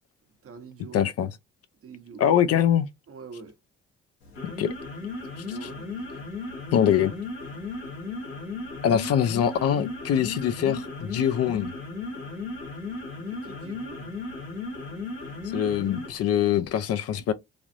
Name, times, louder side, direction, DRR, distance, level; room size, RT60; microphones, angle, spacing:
voice 1, 0.4-1.1 1.8-2.2 3.1-3.5 5.3-6.1 13.3-14.1, right 5 dB, 45° right, 0.9 m, -45 dB
voice 2, 0.9-1.4 2.2-2.9 4.4-4.7 5.6-5.7 6.7-7.1 8.8-11.7 15.5-17.3, left 9 dB, 50° left, 0.5 m, -23 dB
sound 1, 4.2-16.2, left 3 dB, 85° left, 1.2 m, -36 dB
3.3 x 2.4 x 2.5 m
hypercardioid pair, 45°, 31 cm